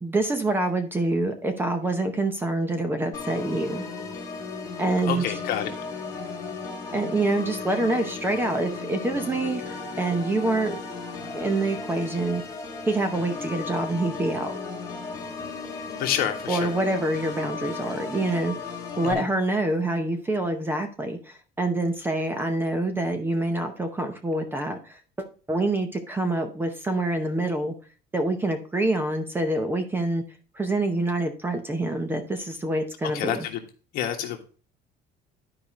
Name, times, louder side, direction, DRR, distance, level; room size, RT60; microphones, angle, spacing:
voice 1, 0.0-3.8 4.8-5.4 6.9-10.8 11.3-12.4 12.8-14.6 16.5-18.5 19.0-27.7 28.1-30.2 30.5-33.5, right 2 dB, 10° right, 7 dB, 0.8 m, -26 dB
Organ, 3.1-19.1, left 4 dB, 15° left, 1.8 m, -35 dB
voice 2, 5.1-5.7 16.0-16.7 19.0-19.3 33.1-33.6 33.9-34.4, left 10 dB, 55° left, 4 dB, 1.5 m, -28 dB
12.0 x 4.9 x 3.0 m, 0.38 s
cardioid pair, 175°, 19 cm